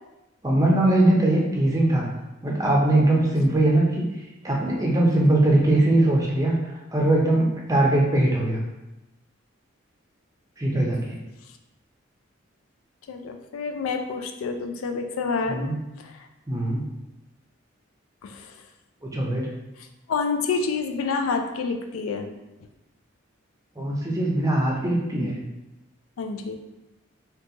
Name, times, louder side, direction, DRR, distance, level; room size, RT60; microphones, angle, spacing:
voice 1, 0.4-2.1 2.4-4.0 4.4-6.5 6.9-8.6 10.6-11.2 15.5-15.8 16.5-16.8 19.0-19.5 23.8-25.4, right 1 dB, 15° right, -2 dB, 0.5 m, -21 dB
voice 2, 13.1-16.1 18.2-18.6 20.1-22.3 26.2-26.6, left 4 dB, 85° left, 6 dB, 0.3 m, -28 dB
3.8 x 2.3 x 2.8 m, 0.98 s
head